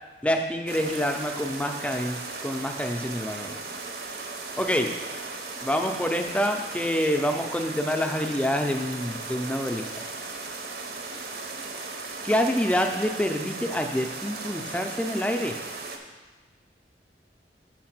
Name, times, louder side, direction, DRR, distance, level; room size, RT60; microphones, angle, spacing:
voice 1, 0.2-3.6 4.6-4.9 5.6-10.0 12.2-15.6, equal, 5° left, 5 dB, 0.4 m, -27 dB
sound 1, 0.7-16.0, right 3 dB, 60° right, 0.6 m, -37 dB
5.6 x 4.7 x 5.9 m, 1.2 s
head